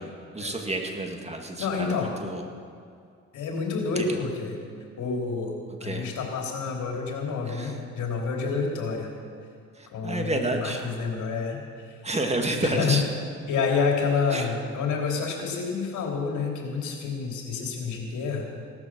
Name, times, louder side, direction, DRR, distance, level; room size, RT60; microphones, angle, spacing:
voice 1, 0.0-2.4 4.0-4.2 5.8-6.1 7.5-7.7 9.8-10.8 12.0-13.0 14.3-14.5, right 2 dB, 20° right, 3 dB, 2.1 m, -30 dB
voice 2, 1.6-2.1 3.3-4.6 5.0-5.5 5.8-9.1 9.9-12.0 12.6-13.0 13.5-18.5, left 5 dB, 75° left, 0 dB, 3.3 m, -28 dB
17.0 x 13.5 x 6.2 m, 2.3 s
cardioid pair, 90°, 30 cm